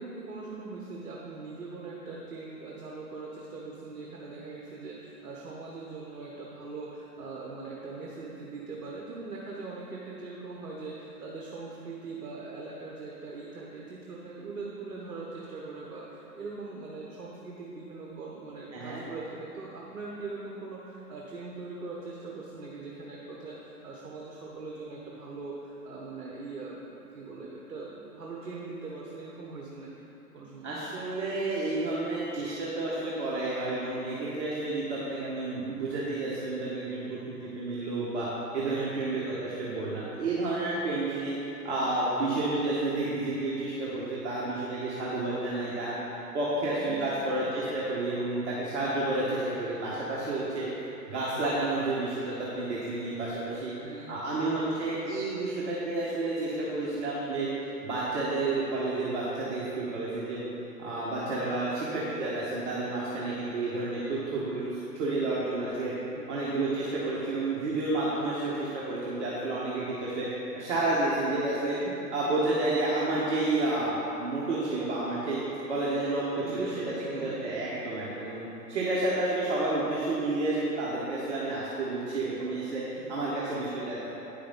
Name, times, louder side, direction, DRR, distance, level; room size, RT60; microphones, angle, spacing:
voice 1, 0.0-29.9 30.3-30.7 39.0-39.4 46.8-47.5 53.8-54.7 66.1-67.0 71.8-72.1 73.1-73.2 76.4-77.5 82.9-83.8, right 3 dB, 65° right, -3 dB, 1.2 m, -41 dB
voice 2, 18.7-19.0 30.6-38.3 38.5-41.4 41.6-46.0 46.3-50.7 51.1-53.7 54.1-57.5 57.8-60.5 60.8-65.9 66.3-70.3 70.5-71.8 72.1-75.4 75.7-76.7 77.1-82.8 83.1-84.1, right 2 dB, 45° right, -8 dB, 1.5 m, -30 dB
9.0 x 6.7 x 3.9 m, 3.0 s
figure-of-eight pair, 115°, 48 cm